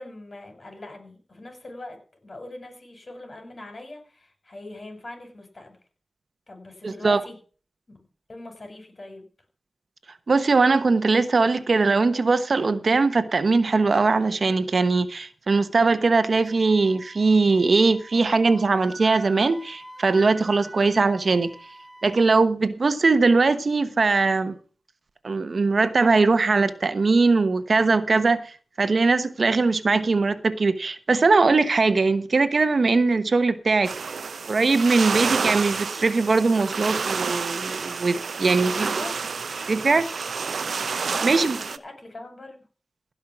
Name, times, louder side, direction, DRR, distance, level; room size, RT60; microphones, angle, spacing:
voice 1, 0.0-5.8 6.5-7.4 7.9-8.0 8.3-9.3 38.7-39.4 41.1-42.6, left 2 dB, 50° left, 5.8 m, -41 dB
voice 2, 6.8-7.2 10.3-21.5 22.0-24.5 25.2-28.4 28.8-33.9 34.5-38.9 39.7-40.1 41.2-41.6, right 3 dB, 60° right, 1.1 m, -20 dB
Wind instrument woodwind instrument, 16.5-22.3, right 1 dB, 5° left, 1.8 m, -45 dB
sound 1, 33.8-41.8, right 5 dB, 80° right, 0.7 m, -29 dB
16.5 x 5.6 x 6.0 m
cardioid pair, 45°, 0 cm